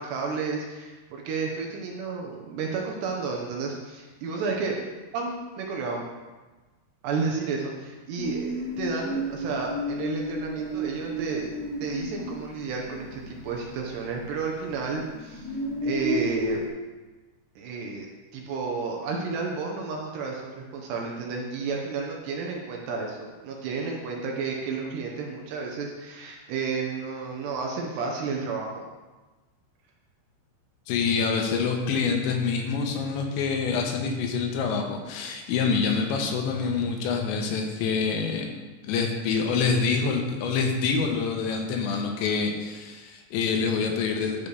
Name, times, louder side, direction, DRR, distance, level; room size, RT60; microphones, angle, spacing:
voice 1, 0.0-4.8 5.1-6.1 7.0-11.5 11.8-15.5 15.8-16.6 17.6-28.9, right 4 dB, 75° right, -1 dB, 2.7 m, -31 dB
sound 1, 8.2-14.4 14.6-16.7, equal, 60° left, 3.0 m, -32 dB
voice 2, 30.9-38.5 38.8-44.5, left 5 dB, 80° left, 2 dB, 3.1 m, -26 dB
12.5 x 5.3 x 3.3 m, 1.2 s
omnidirectional pair, 5.4 m